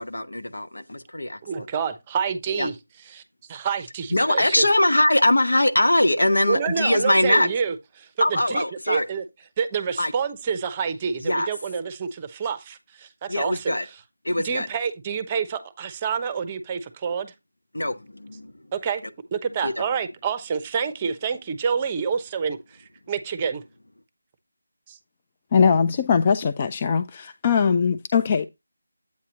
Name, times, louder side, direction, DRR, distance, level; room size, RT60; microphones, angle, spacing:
voice 1, 0.0-1.7 2.6-2.7 4.1-7.5 8.2-9.1 10.0-10.1 11.2-11.5 13.3-13.9 14.2-14.7 17.7-18.7 19.6-19.8, left 1 dB, 85° left, 0.9 m, -22 dB
voice 2, 1.4-2.7 3.1-3.2 3.5-4.6 6.5-9.2 9.6-13.7 14.4-17.3 18.7-19.0 19.3-23.6 24.9-25.0, right 6 dB, 20° right, 0.7 m, -28 dB
voice 3, 25.5-28.5, left 6 dB, 30° left, 0.4 m, -21 dB
8.3 x 2.8 x 6.1 m
figure-of-eight pair, 165°, 0 cm